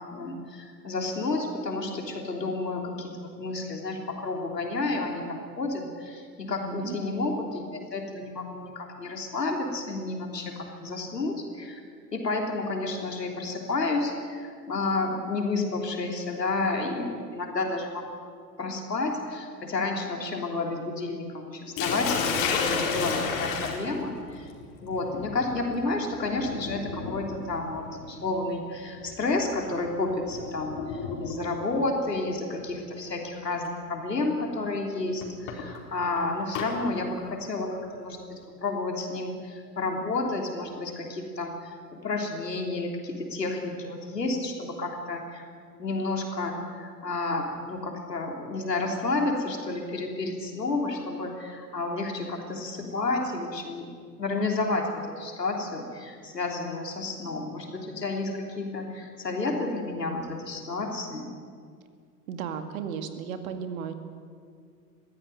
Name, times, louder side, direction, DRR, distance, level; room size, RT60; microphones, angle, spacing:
voice 1, 0.0-11.8 12.1-18.0 18.6-24.5 24.8-30.8 31.2-45.4 45.8-53.9 54.2-61.3, left 3 dB, 80° left, 2 dB, 3.6 m, -31 dB
voice 2, 6.5-7.0 62.3-63.9, right 7 dB, 55° right, 8 dB, 2.2 m, -35 dB
Sink (filling or washing), 21.8-31.7 32.8-33.1 33.6-33.7 35.2-36.7, left 5 dB, 45° left, 4.3 m, -33 dB
22.0 x 16.0 x 9.3 m, 2.1 s
figure-of-eight pair, 90°, 48 cm